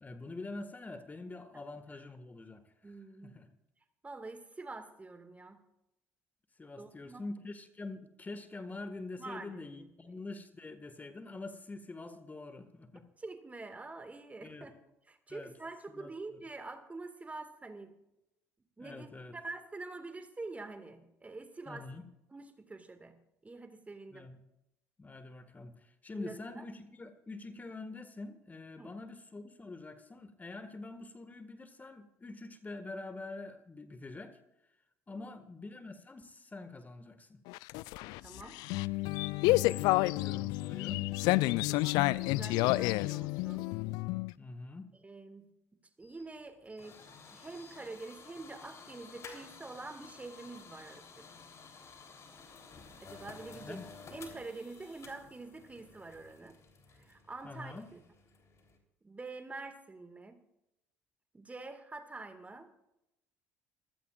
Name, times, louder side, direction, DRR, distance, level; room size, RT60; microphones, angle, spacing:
voice 1, 0.0-3.0 3.2-3.5 6.6-13.1 14.4-14.7 15.3-15.5 15.9-16.4 18.8-19.4 21.7-22.0 24.1-24.4 25.0-34.4 35.1-37.4 39.4-41.1 44.4-44.9 53.5-53.9 57.4-57.9, left 2 dB, 20° left, 9 dB, 1.9 m, -45 dB
voice 2, 2.8-3.4 4.0-5.6 6.8-7.2 9.2-10.2 13.2-14.7 15.1-17.9 18.8-21.9 22.3-23.2 23.4-24.3 26.1-26.6 28.8-28.9 35.1-35.3 38.2-38.6 41.5-43.7 45.0-45.5 46.0-47.0 47.3-51.3 53.0-53.8 54.1-56.6 56.9-58.0 59.0-60.4 61.3-62.7, right 3 dB, 20° right, 8 dB, 2.0 m, -46 dB
sound 1, 37.5-44.3, left 20 dB, 60° left, 0.4 m, -30 dB
sound 2, 46.0-58.8, left 4 dB, 40° left, 3.6 m, -53 dB
26.0 x 16.0 x 2.5 m, 0.85 s
figure-of-eight pair, 55°, 8 cm